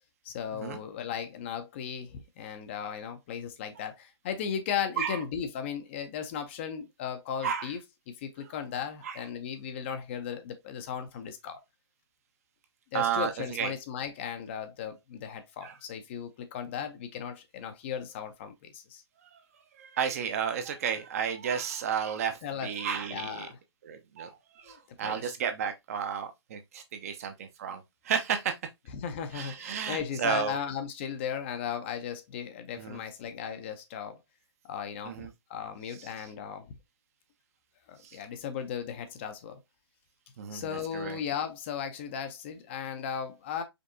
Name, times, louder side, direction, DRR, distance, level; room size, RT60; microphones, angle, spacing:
voice 1, 0.2-7.8 8.1-11.6 12.9-19.0 22.4-22.7 23.1-23.6 24.6-25.2 28.9-34.2 34.6-36.7 37.9-39.6 40.5-43.6, left 8 dB, 25° left, 0.6 m, -36 dB
voice 2, 12.9-13.7 15.6-15.7 19.2-19.3 19.8-23.5 23.8-28.5 29.3-30.6 32.8-33.0 35.1-35.3 36.0-36.1 38.0-38.2 40.4-41.2, right 7 dB, 35° right, 0.7 m, -32 dB
5.2 x 3.4 x 2.7 m
figure-of-eight pair, 145°, 14 cm